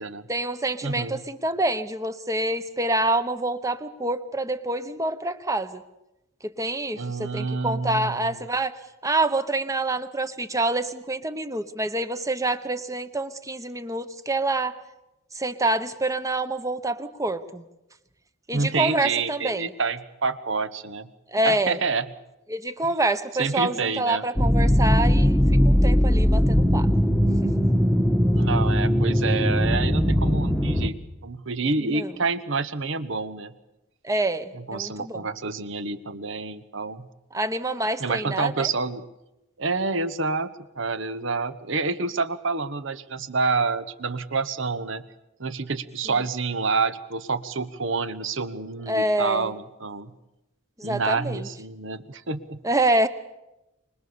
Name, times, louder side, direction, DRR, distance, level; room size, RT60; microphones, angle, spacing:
voice 1, 0.3-5.8 6.4-8.7 9.0-14.7 15.3-17.6 18.5-19.7 21.3-21.8 22.5-26.9 27.4-27.5 31.8-32.1 34.0-35.3 37.3-38.7 48.9-49.5 50.8-51.5 52.6-53.1, right 2 dB, 15° right, 11 dB, 1.0 m, -26 dB
voice 2, 0.8-1.2 6.9-8.4 18.5-21.1 21.4-22.0 23.4-24.2 28.3-33.5 34.5-37.1 38.0-39.0 39.6-45.0 45.4-50.1 50.8-52.6, right 4 dB, 60° right, 12 dB, 1.1 m, -28 dB
sound 1, 24.4-30.9, equal, ahead, 1.3 m, -20 dB
25.0 x 20.5 x 6.9 m, 0.96 s
head